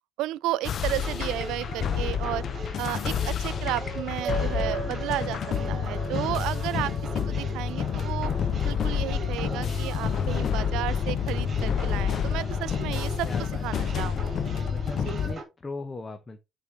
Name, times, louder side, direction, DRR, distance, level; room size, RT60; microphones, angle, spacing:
voice 1, 0.2-5.4 5.7-6.9 7.3-14.2 15.0-15.2, right 16 dB, 75° right, 0.3 m, -33 dB
sound 1, 0.6-15.3, left 7 dB, 55° left, 0.6 m, -29 dB
sound 2, 0.9-15.4, right 3 dB, 40° right, 2.2 m, -40 dB
sound 3, 4.2-8.9, right 6 dB, 60° right, 1.1 m, -38 dB
voice 2, 13.2-13.9 14.7-16.4, left 3 dB, 25° left, 0.8 m, -39 dB
8.1 x 4.1 x 3.4 m
supercardioid pair, 80°, 0 cm